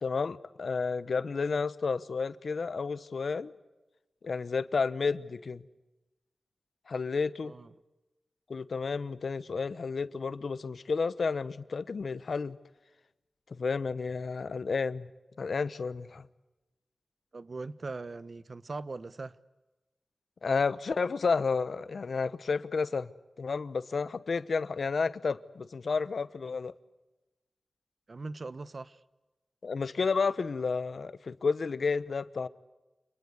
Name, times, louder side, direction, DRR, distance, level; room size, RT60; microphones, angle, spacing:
voice 1, 0.0-3.5 4.2-5.6 6.9-7.5 8.5-12.6 13.5-15.1 15.4-16.2 20.4-23.1 23.4-26.7 29.6-32.5, left 4 dB, 80° left, 1.0 m, -31 dB
voice 2, 7.4-7.7 17.3-19.4 28.1-29.0, right 3 dB, 60° right, 1.1 m, -40 dB
27.5 x 21.5 x 8.2 m
cardioid pair, 45°, 0 cm